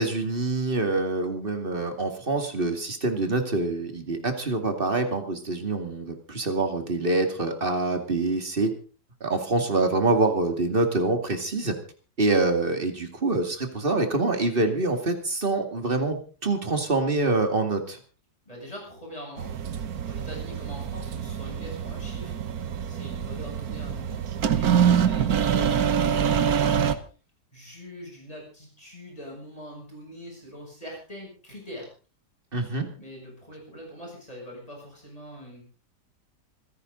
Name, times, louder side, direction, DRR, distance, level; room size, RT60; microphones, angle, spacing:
voice 1, 0.0-8.7 9.2-11.7 12.2-18.0 32.5-32.9, right 2 dB, 30° right, 6 dB, 2.5 m, -25 dB
voice 2, 18.4-22.4 22.9-27.0 27.5-31.9 33.0-35.7, equal, 20° left, -2 dB, 7.8 m, -43 dB
sound 1, 19.4-26.9, right 8 dB, 65° right, 1.5 m, -25 dB
26.0 x 10.5 x 3.9 m, 0.38 s
omnidirectional pair, 1.8 m